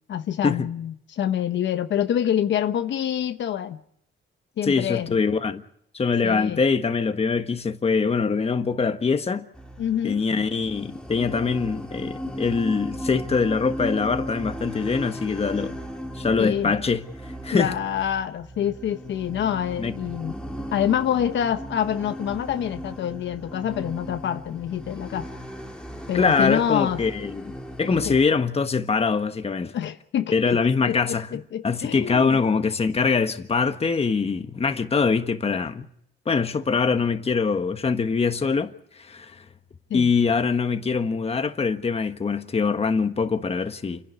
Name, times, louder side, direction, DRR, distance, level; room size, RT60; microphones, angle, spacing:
voice 1, 0.1-3.8 4.6-5.2 6.2-6.6 9.8-10.2 16.4-16.7 17.5-20.3 20.7-25.3 26.1-27.0 28.0-28.2 29.7-30.6 30.9-32.4 39.9-40.1, left 9 dB, 70° left, 1.1 m, -26 dB
voice 2, 4.6-5.6 5.9-9.4 10.0-15.8 16.1-17.1 17.4-17.7 19.8-19.9 26.1-29.7 30.3-35.9 36.2-39.4 39.9-44.0, left 5 dB, 30° left, 1.5 m, -23 dB
sound 1, 9.5-28.2, equal, 5° left, 2.7 m, -37 dB
29.0 x 11.0 x 9.7 m
cardioid pair, 90°, 20 cm